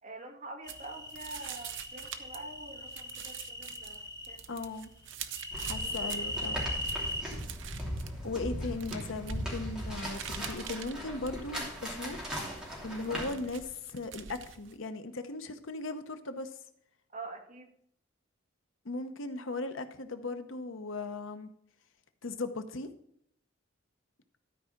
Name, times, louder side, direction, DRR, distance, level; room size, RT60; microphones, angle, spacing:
voice 1, 0.0-4.4 5.8-6.3 17.1-17.7, right 2 dB, 40° right, 1 dB, 1.8 m, -46 dB
sound 1, 0.6-4.4 5.3-7.2, left 1 dB, 20° left, 1.0 m, -39 dB
sound 2, 0.7-14.8, right 10 dB, 70° right, 0.7 m, -47 dB
voice 2, 4.5-4.9 5.6-6.6 8.2-12.3 12.8-16.6 18.8-21.5 22.2-22.9, left 3 dB, 85° left, 9 dB, 0.9 m, -38 dB
sound 3, 5.5-13.7, equal, 5° right, 2.9 m, -39 dB
12.5 x 4.8 x 5.8 m, 0.70 s
head